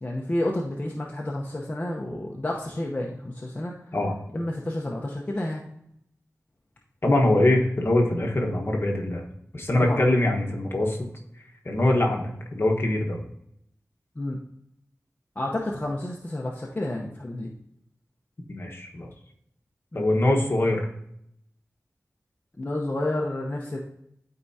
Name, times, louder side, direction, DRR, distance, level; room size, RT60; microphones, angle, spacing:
voice 1, 0.0-3.7 4.3-5.6 9.8-10.0 14.2-14.4 15.4-17.5 19.9-20.0 22.6-23.8, left 1 dB, 30° left, -2 dB, 0.9 m, -30 dB
voice 2, 7.0-9.3 9.5-11.1 11.6-13.2 18.5-19.1 19.9-20.9, left 1 dB, 45° left, 0 dB, 1.3 m, -23 dB
12.0 x 4.7 x 2.7 m, 0.74 s
wide cardioid pair, 85°, 5 cm